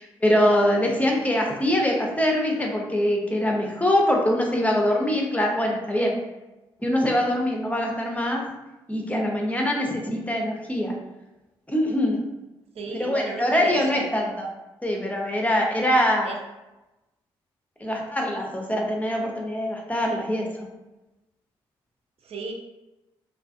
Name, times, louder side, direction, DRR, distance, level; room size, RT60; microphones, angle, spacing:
voice 1, 0.0-6.1 6.8-8.4 8.9-10.9 11.7-12.2 12.9-14.5 14.8-16.3 17.8-20.5, left 1 dB, 10° left, 0 dB, 0.6 m, -23 dB
voice 2, 1.0-1.5 12.7-14.1 16.2-16.4 22.2-22.5, right 3 dB, 55° right, 2 dB, 0.5 m, -35 dB
2.4 x 2.3 x 2.5 m, 1.0 s
hypercardioid pair, 45°, 12 cm